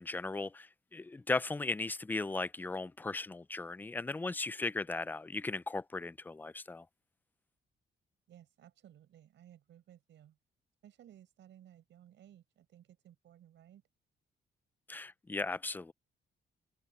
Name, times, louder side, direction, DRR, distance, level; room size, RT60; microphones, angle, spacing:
voice 1, 0.0-6.9 14.9-15.9, left 3 dB, 10° left, 0.3 m, -37 dB
voice 2, 8.3-10.4 10.8-13.8, right 11 dB, 85° right, 5.4 m, -59 dB
open air
cardioid pair, 140°, 19 cm